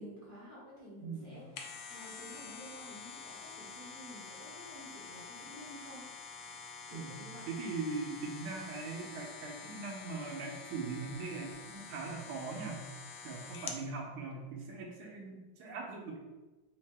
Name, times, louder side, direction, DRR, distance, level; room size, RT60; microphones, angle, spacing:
voice 1, 0.0-6.1 6.9-7.4, equal, 20° left, -9 dB, 1.3 m, -51 dB
voice 2, 1.0-1.5 6.9-7.2 7.5-12.8 13.2-16.2, right 4 dB, 90° right, 0 dB, 1.7 m, -41 dB
sound 1, 1.3-13.9 14.3-14.4, left 5 dB, 90° left, 0.8 m, -48 dB
4.9 x 2.8 x 3.4 m, 1.2 s
omnidirectional pair, 2.3 m